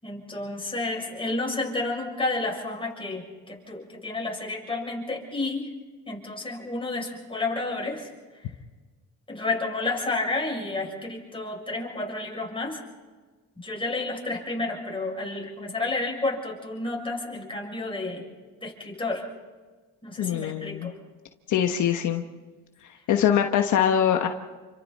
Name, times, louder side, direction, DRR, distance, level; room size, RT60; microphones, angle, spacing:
voice 1, 0.0-5.7 6.0-8.1 9.3-12.8 13.6-18.2 18.6-19.2 20.0-20.9, left 2 dB, 15° left, -1 dB, 7.2 m, -31 dB
voice 2, 20.2-20.9 21.5-22.2 23.1-24.3, left 9 dB, 80° left, 5 dB, 1.3 m, -23 dB
29.5 x 25.0 x 4.3 m, 1.4 s
cardioid pair, 90°, 30 cm